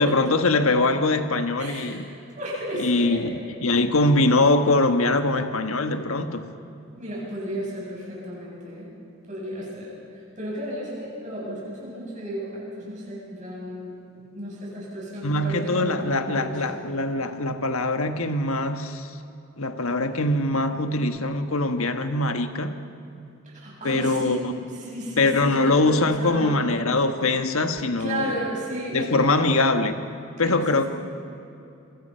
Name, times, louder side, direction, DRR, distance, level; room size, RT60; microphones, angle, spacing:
voice 1, 0.0-2.1 2.8-6.5 15.2-19.2 19.6-22.8 23.8-24.4 25.2-28.4 28.9-30.1 30.4-30.8, left 2 dB, 90° left, 7 dB, 1.4 m, -22 dB
voice 2, 1.6-2.0 2.4-3.3 7.0-8.9 9.3-16.8 23.4-26.6 27.2-27.3 28.0-29.4 30.4-30.9, right 1 dB, 35° right, -4 dB, 7.9 m, -34 dB
27.0 x 24.0 x 5.6 m, 2.8 s
head